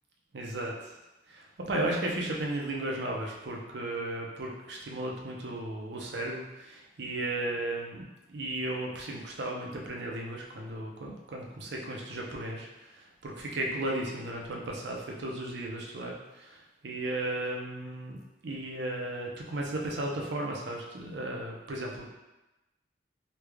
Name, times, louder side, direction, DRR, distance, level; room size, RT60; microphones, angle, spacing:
voice 1, 0.3-0.9 1.3-18.2 18.4-22.1, right 1 dB, 60° right, -1 dB, 0.6 m, -35 dB
3.2 x 2.4 x 3.4 m, 1.0 s
head